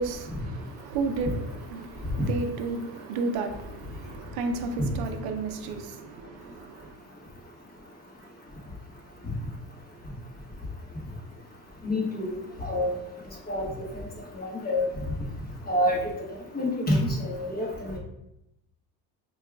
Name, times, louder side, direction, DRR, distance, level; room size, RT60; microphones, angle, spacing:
voice 1, 0.0-7.0, right 3 dB, 75° right, 0.5 m, -33 dB
voice 2, 11.8-12.3 12.6-12.9 13.5-13.7 14.4-14.9 15.7-16.0 16.5-18.0, left 1 dB, 25° left, 1.0 m, -27 dB
4.5 x 2.3 x 2.3 m
cardioid pair, 110°, 39 cm